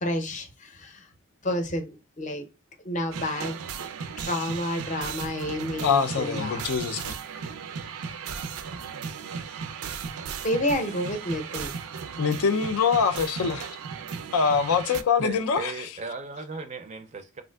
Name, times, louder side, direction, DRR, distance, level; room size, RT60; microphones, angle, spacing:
voice 1, 0.0-1.1 1.4-2.4 2.8-3.6 4.2-6.6 10.4-11.8, left 1 dB, 35° left, 0.6 m, -30 dB
sound 1, 3.1-15.0, right 6 dB, 90° right, 0.4 m, -36 dB
voice 2, 5.8-7.2 12.2-13.8 14.3-15.7, left 6 dB, 80° left, 0.4 m, -24 dB
voice 3, 15.2-17.4, right 4 dB, 30° right, 0.4 m, -36 dB
3.4 x 2.5 x 2.2 m
head